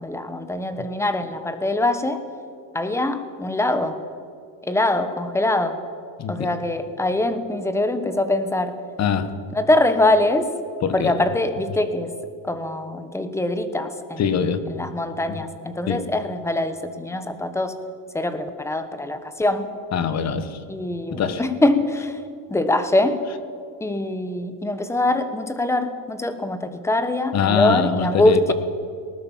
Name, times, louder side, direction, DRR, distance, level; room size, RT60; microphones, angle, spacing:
voice 1, 0.0-2.2 2.7-4.0 4.6-5.8 6.3-8.8 9.5-10.5 10.9-12.1 12.4-14.3 14.7-17.7 18.1-19.7 20.7-22.2 22.5-23.2 23.8-28.5, left 2 dB, 5° left, 10 dB, 1.2 m, -23 dB
voice 2, 9.0-9.3 10.8-11.1 14.2-14.6 15.3-15.4 15.9-16.0 19.9-20.6 21.1-21.4 27.3-28.5, left 7 dB, 35° left, 11 dB, 1.4 m, -23 dB
20.0 x 19.0 x 7.4 m, 2.3 s
cardioid pair, 155°, 47 cm